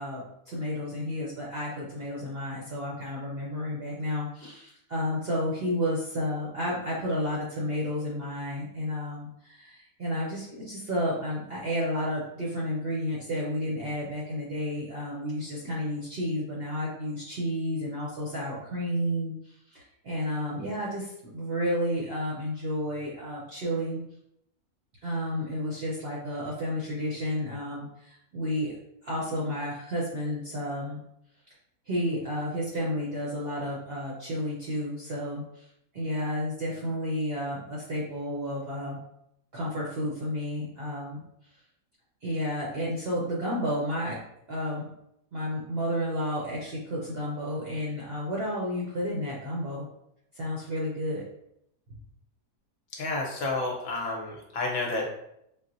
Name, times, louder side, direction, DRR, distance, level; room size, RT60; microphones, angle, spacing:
voice 1, 0.0-24.0 25.0-28.8 29.0-31.0 31.9-35.7 35.9-39.0 39.5-41.2 42.2-44.2 44.5-44.9 45.3-49.9 50.3-51.2, equal, 60° right, -5 dB, 0.6 m, -31 dB
voice 2, 52.9-55.1, left 2 dB, 65° left, -1 dB, 1.1 m, -30 dB
4.2 x 2.0 x 2.5 m, 0.78 s
omnidirectional pair, 1.7 m